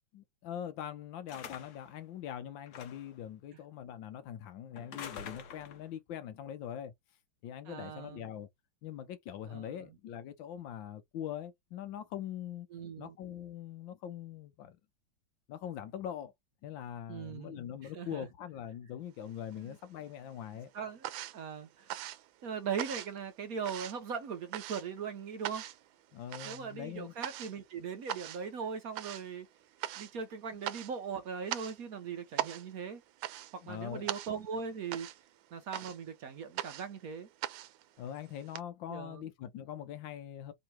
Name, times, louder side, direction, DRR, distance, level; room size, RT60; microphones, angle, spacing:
voice 1, 0.1-6.9 7.4-8.5 8.8-12.7 13.0-14.8 15.5-16.3 16.6-20.7 26.1-27.1 33.6-34.1 38.0-40.5, left 10 dB, 85° left, 1.5 m, -42 dB
sound 1, 1.3-1.9 2.7-3.2 4.8-5.9, left 6 dB, 60° left, 1.4 m, -46 dB
voice 2, 7.7-8.3 9.5-10.0 12.7-13.2 17.1-18.3 19.6-19.8 20.7-21.1 21.3-21.9 22.4-25.6 26.4-29.5 30.0-33.0 33.5-35.1 35.5-37.3 38.9-39.2, right 6 dB, 60° right, 1.0 m, -40 dB
sound 2, 19.2-20.0 20.3-38.6, right 13 dB, 85° right, 1.3 m, -42 dB
3.7 x 2.9 x 4.5 m
omnidirectional pair, 2.0 m